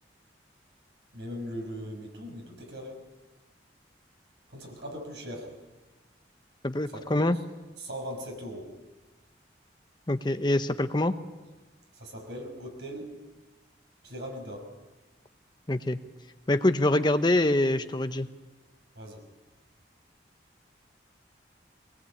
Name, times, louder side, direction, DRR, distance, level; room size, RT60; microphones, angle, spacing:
voice 1, 1.1-3.0 4.5-5.5 6.9-7.3 7.8-8.7 11.9-13.1 14.0-14.7 19.0-19.2, equal, 70° right, 2 dB, 5.8 m, -39 dB
voice 2, 6.6-7.4 10.1-11.1 15.7-16.0 16.5-18.3, left 1 dB, 25° left, 10 dB, 0.8 m, -25 dB
22.0 x 19.5 x 8.5 m, 1.2 s
head